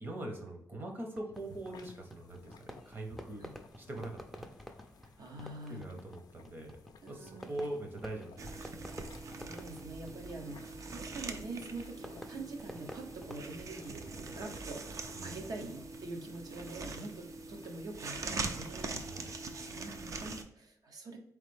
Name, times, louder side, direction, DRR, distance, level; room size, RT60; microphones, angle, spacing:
voice 1, 0.0-3.4 3.8-4.5 5.7-6.8 7.1-8.7 15.1-15.7 19.0-19.3, right 1 dB, 35° right, 3 dB, 0.9 m, -43 dB
Fireworks, 1.1-13.5, equal, ahead, 0.4 m, -51 dB
sound 1, 1.3-20.0, left 6 dB, 85° left, 0.4 m, -59 dB
voice 2, 5.2-5.8 7.0-7.7 9.3-14.9 15.2-21.2, right 2 dB, 75° right, 3 dB, 0.8 m, -45 dB
sound 2, 8.4-20.4, right 3 dB, 55° right, 0.5 m, -43 dB
4.1 x 3.2 x 3.3 m, 0.73 s
wide cardioid pair, 140°, 7 cm